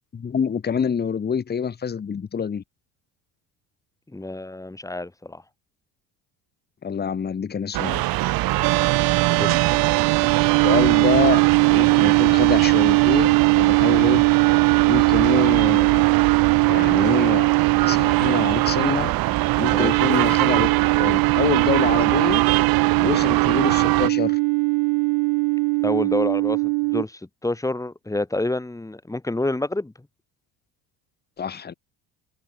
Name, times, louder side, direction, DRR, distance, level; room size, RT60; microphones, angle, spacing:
voice 1, 0.1-2.6 6.8-8.1 10.6-14.3 14.9-16.0 16.7-17.5 17.8-19.1 19.6-20.7 21.0-22.4 23.0-24.4 31.4-31.7, left 7 dB, 25° left, 1.4 m, -26 dB
voice 2, 4.1-5.4 9.3-9.6 19.7-20.0 25.8-29.9, left 2 dB, 10° left, 3.6 m, -28 dB
sound 1, 7.7-24.1, right 17 dB, 60° right, 1.3 m, -23 dB
sound 2, 8.6-27.0, right 30 dB, 85° right, 0.7 m, -20 dB
open air
cardioid pair, 120°, 40 cm